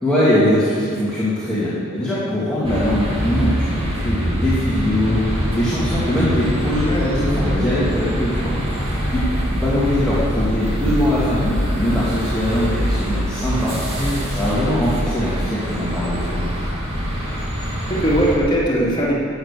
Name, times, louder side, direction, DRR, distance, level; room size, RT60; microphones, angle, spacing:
voice 1, 0.0-13.8 14.2-16.4, left 1 dB, 5° left, -11 dB, 2.4 m, -21 dB
sound 1, 2.6-18.4, equal, 30° right, 2.3 m, -24 dB
voice 2, 6.8-7.6 13.9-14.3 17.9-19.1, equal, 25° left, -5 dB, 2.4 m, -21 dB
12.0 x 7.3 x 8.4 m, 2.5 s
head